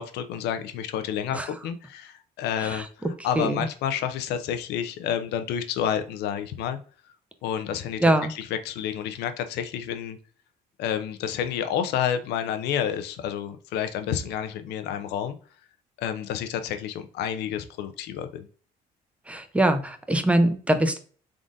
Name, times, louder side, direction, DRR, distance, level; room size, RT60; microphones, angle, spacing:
voice 1, 0.0-2.9 3.2-6.8 7.4-8.0 8.3-10.2 10.8-15.4 16.0-18.5, left 9 dB, 80° left, 9 dB, 0.5 m, -29 dB
voice 2, 3.3-3.7 8.0-8.3 19.3-21.0, right 1 dB, 5° right, 8 dB, 0.5 m, -23 dB
3.7 x 3.7 x 2.5 m, 0.42 s
cardioid pair, 110°, 17 cm